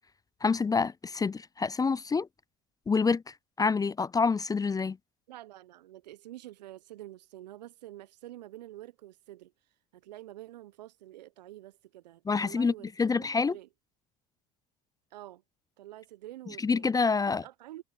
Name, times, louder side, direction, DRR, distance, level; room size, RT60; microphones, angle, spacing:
voice 1, 0.4-2.3 2.9-5.0 12.3-12.7 13.0-13.5 16.6-17.4, left 4 dB, 15° left, 0.5 m, -27 dB
voice 2, 5.3-9.5 9.9-13.7 15.1-15.4 15.8-16.9 17.2-17.8, right 15 dB, 80° right, 1.2 m, -48 dB
hypercardioid pair, 65°, 21 cm